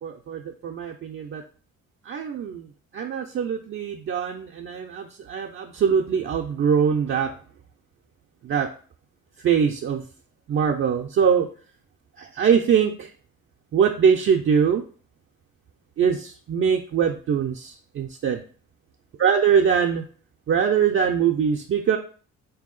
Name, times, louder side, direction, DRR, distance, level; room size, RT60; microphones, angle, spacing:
voice 1, 0.0-1.4 2.1-2.7 2.9-7.3 8.4-8.7 9.4-10.0 10.5-11.5 12.2-13.1 13.7-14.8 16.0-18.4 19.2-20.0 20.5-22.0, right 7 dB, 45° right, 1 dB, 0.4 m, -22 dB
3.5 x 2.7 x 3.7 m, 0.41 s
cardioid pair, 90°, 30 cm